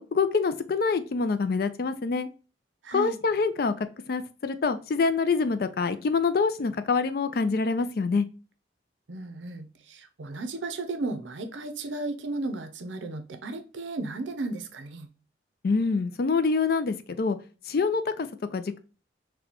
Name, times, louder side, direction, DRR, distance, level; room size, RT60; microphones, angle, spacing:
voice 1, 0.0-2.3 2.9-8.2 15.6-17.4 17.7-18.8, left 4 dB, 50° left, 0.4 m, -26 dB
voice 2, 2.8-3.2 9.1-15.1, right 2 dB, 80° right, 0.6 m, -34 dB
4.1 x 2.2 x 2.9 m
head